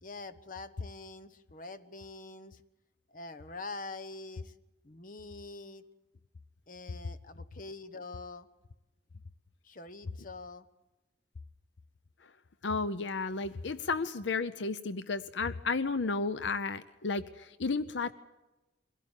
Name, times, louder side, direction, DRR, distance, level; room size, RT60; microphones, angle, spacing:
voice 1, 0.0-2.6 3.1-4.5 4.8-5.8 6.7-8.5 9.6-10.7, left 3 dB, 45° left, 10 dB, 1.1 m, -45 dB
voice 2, 12.6-18.1, left 4 dB, 75° left, 13 dB, 0.7 m, -33 dB
23.5 x 16.5 x 9.0 m, 1.1 s
head